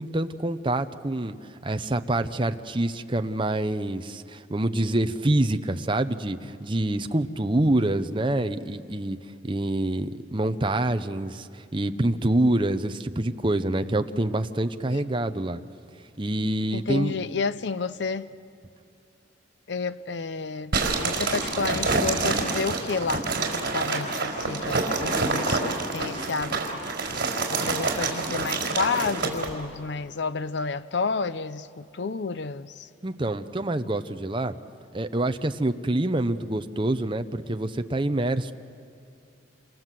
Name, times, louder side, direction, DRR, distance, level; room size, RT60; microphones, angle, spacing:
voice 1, 0.0-1.4 1.6-9.2 9.4-15.6 16.2-17.2 33.0-34.6 34.9-38.5, right 1 dB, 25° right, 0.8 m, -26 dB
voice 2, 16.7-18.3 19.7-20.7 21.0-32.9, left 4 dB, 65° left, 0.6 m, -31 dB
sound 1, 20.7-29.5, right 3 dB, 55° right, 4.4 m, -27 dB
28.5 x 27.0 x 7.6 m
head